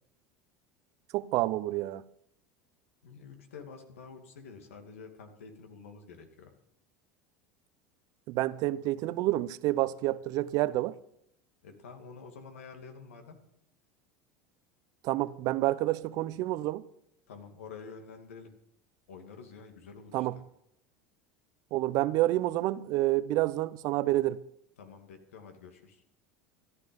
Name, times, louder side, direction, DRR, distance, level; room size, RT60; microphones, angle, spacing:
voice 1, 1.1-2.0 8.3-10.9 15.0-16.8 20.1-20.4 21.7-24.4, right 16 dB, 60° right, 0.7 m, -28 dB
voice 2, 3.0-6.5 11.6-13.4 17.3-18.5 19.1-20.4 24.8-26.0, left 5 dB, 90° left, 2.3 m, -48 dB
13.5 x 11.5 x 5.3 m
hypercardioid pair, 95°, 7 cm